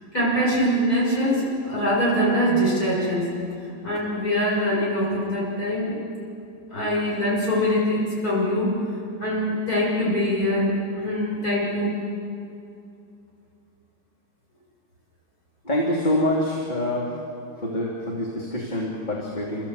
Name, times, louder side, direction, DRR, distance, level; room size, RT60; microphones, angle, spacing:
voice 1, 0.1-3.3 3.8-6.0 6.7-8.7 9.2-12.0, equal, 55° left, -5 dB, 7.9 m, -23 dB
voice 2, 15.6-17.2 17.6-19.7, left 1 dB, 25° left, -4 dB, 2.9 m, -25 dB
29.5 x 14.5 x 8.3 m, 2.6 s
omnidirectional pair, 1.9 m